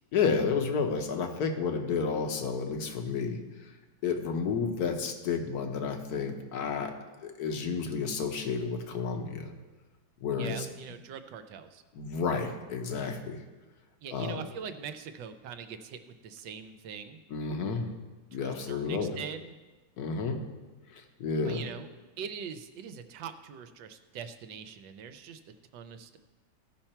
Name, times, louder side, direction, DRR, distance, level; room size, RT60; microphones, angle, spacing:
voice 1, 0.1-3.7 4.0-9.5 10.2-10.7 11.9-13.4 14.1-14.5 17.3-17.9 18.3-19.1 20.0-20.4 20.9-21.6, left 5 dB, 60° left, 5 dB, 1.4 m, -31 dB
voice 2, 10.4-11.8 14.0-17.2 18.3-19.5 21.4-21.9 22.2-25.4 25.7-26.2, right 7 dB, 75° right, 9 dB, 1.4 m, -42 dB
16.0 x 5.8 x 4.4 m, 1.2 s
omnidirectional pair, 2.1 m